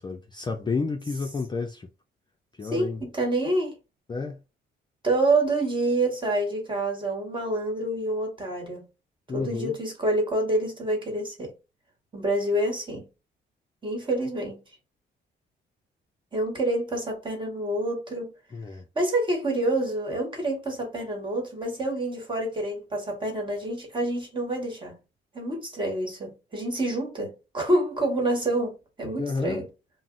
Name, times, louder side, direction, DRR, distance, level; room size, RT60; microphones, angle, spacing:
voice 1, 0.0-1.9 2.5-3.0 4.1-4.4 9.3-9.8 18.5-18.8 29.2-29.6, left 4 dB, 20° left, 0.4 m, -31 dB
voice 2, 2.7-3.7 5.0-8.9 9.3-11.5 12.1-13.1 13.8-14.6 16.3-18.3 18.9-25.0 25.3-29.6, right 1 dB, 25° right, 1.4 m, -27 dB
2.6 x 2.0 x 3.7 m
cardioid pair, 90°, 20 cm